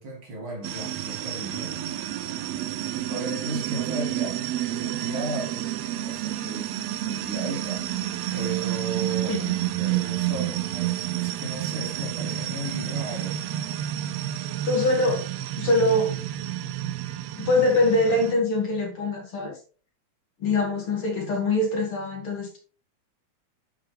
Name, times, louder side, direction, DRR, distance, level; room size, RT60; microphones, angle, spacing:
voice 1, 0.0-1.8 3.1-5.8 6.0-6.7 7.1-7.9 8.3-9.4 9.8-13.4, right 2 dB, 45° right, 2.9 m, -35 dB
sound 1, 0.6-18.3, right 13 dB, 75° right, 1.6 m, -30 dB
voice 2, 14.6-15.3 15.6-16.2 17.4-19.6 20.4-22.6, left 2 dB, 50° left, 2.5 m, -23 dB
10.5 x 5.7 x 3.2 m
omnidirectional pair, 3.4 m